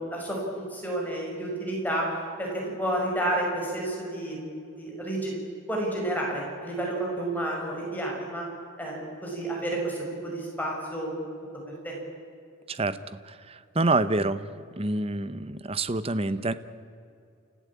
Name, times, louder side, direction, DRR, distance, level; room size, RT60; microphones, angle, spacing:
voice 1, 0.0-4.5 4.7-5.3 5.7-8.4 8.8-11.1 11.8-12.0, right 1 dB, 10° left, -2 dB, 5.7 m, -30 dB
voice 2, 12.7-14.5 14.8-16.5, right 2 dB, 30° right, 14 dB, 0.8 m, -27 dB
29.0 x 14.5 x 8.6 m, 2.5 s
head